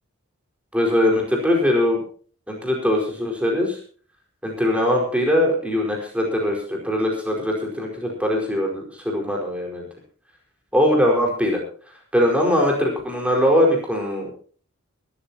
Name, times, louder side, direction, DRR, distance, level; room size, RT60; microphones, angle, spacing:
voice 1, 0.7-2.0 2.5-3.8 4.4-9.9 10.7-11.6 12.1-14.3, left 1 dB, 5° right, -1 dB, 4.8 m, -21 dB
22.5 x 13.5 x 2.9 m, 0.42 s
head